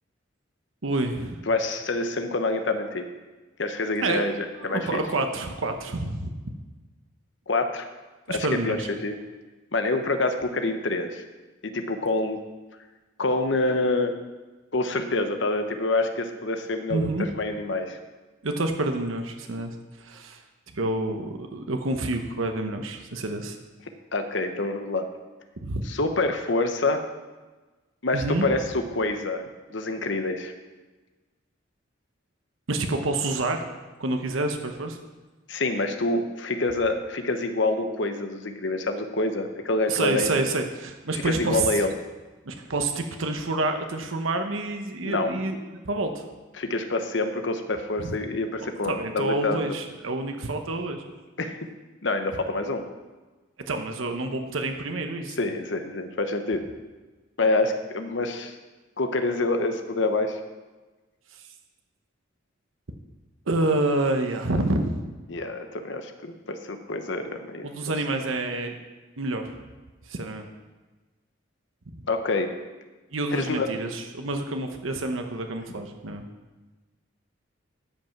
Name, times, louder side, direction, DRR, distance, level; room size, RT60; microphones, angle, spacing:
voice 1, 0.8-1.5 4.0-4.2 4.6-6.4 8.3-8.9 16.9-17.3 18.4-20.4 20.7-23.6 25.6-25.8 28.1-28.5 32.7-33.6 34.0-35.0 39.9-41.7 42.5-46.2 48.0-48.2 48.8-51.0 53.6-55.4 63.5-65.0 67.6-68.8 69.2-69.6 70.1-70.5 73.1-76.2, right 2 dB, 85° right, 5 dB, 1.0 m, -28 dB
voice 2, 1.5-3.1 3.6-4.3 4.6-5.0 7.5-7.9 8.3-8.8 9.0-9.2 9.7-11.2 11.6-12.4 13.2-14.2 14.7-18.0 24.1-25.1 25.8-27.0 28.0-29.4 29.7-30.5 35.5-40.4 41.1-41.9 45.0-45.3 46.6-49.6 51.4-51.6 52.0-52.8 55.4-56.6 57.4-58.5 59.0-60.4 65.3-67.9 72.1-72.5 73.3-73.7, left 2 dB, 65° left, 6 dB, 0.9 m, -26 dB
13.5 x 5.4 x 5.9 m, 1.2 s
head